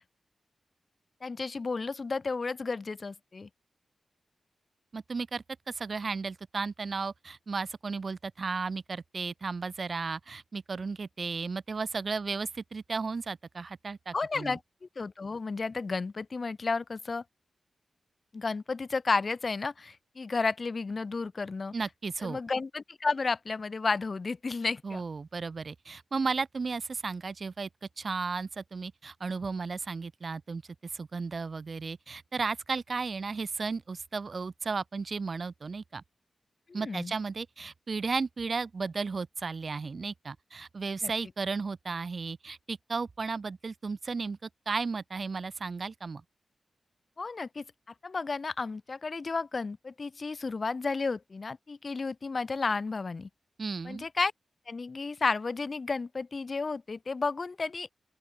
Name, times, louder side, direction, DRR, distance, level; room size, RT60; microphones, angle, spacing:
voice 1, 1.2-3.5 14.1-14.6 15.0-17.2 18.3-21.7 22.2-25.0 36.7-37.1 41.0-41.1 47.2-47.6 48.0-53.3 53.9-54.3 54.7-57.9, left 4 dB, 45° left, 1.6 m, -32 dB
voice 2, 4.9-14.6 21.7-22.4 24.8-27.7 28.0-30.6 30.9-36.0 36.7-46.2 53.6-54.1, right 4 dB, 50° right, 2.6 m, -34 dB
open air
wide cardioid pair, 95°, 0 cm